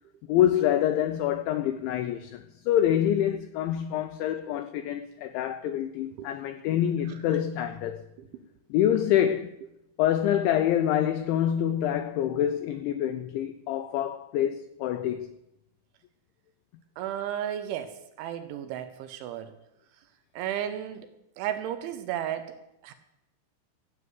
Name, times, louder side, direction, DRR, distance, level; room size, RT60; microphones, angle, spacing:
voice 1, 0.3-8.0 8.7-9.5 10.0-15.3, left 11 dB, 85° left, 2.7 m, -26 dB
voice 2, 17.0-19.5 20.3-21.1 21.4-22.6 22.8-22.9, right 10 dB, 80° right, 3.0 m, -33 dB
15.0 x 7.7 x 8.1 m
omnidirectional pair, 6.0 m